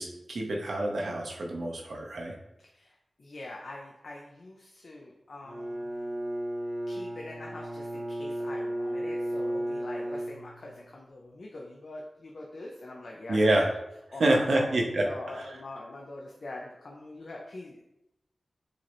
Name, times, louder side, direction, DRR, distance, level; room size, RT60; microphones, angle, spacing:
voice 1, 0.0-2.3 13.3-13.7 14.2-15.0 15.3-15.4, right 1 dB, 80° right, 0 dB, 0.6 m, -27 dB
voice 2, 2.7-5.9 6.9-13.6 14.1-17.8, left 2 dB, 70° left, -2 dB, 0.4 m, -43 dB
Bowed string instrument, 5.4-10.9, right 1 dB, 15° right, 0.6 m, -34 dB
4.8 x 2.0 x 2.9 m, 0.88 s
wide cardioid pair, 60°, 0 cm